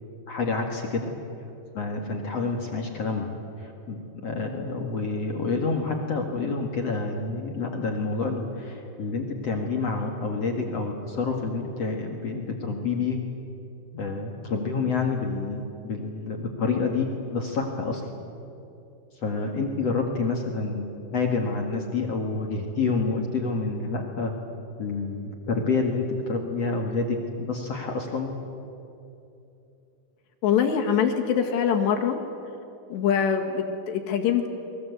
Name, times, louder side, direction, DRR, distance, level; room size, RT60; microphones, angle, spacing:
voice 1, 0.3-1.1 1.7-13.2 13.9-18.1 19.1-24.3 24.8-28.3, left 4 dB, 50° left, 2 dB, 2.0 m, -28 dB
voice 2, 30.4-32.2 32.9-34.5, left 7 dB, 70° left, 2 dB, 4.0 m, -23 dB
29.5 x 22.0 x 8.2 m, 2.8 s
omnidirectional pair, 5.3 m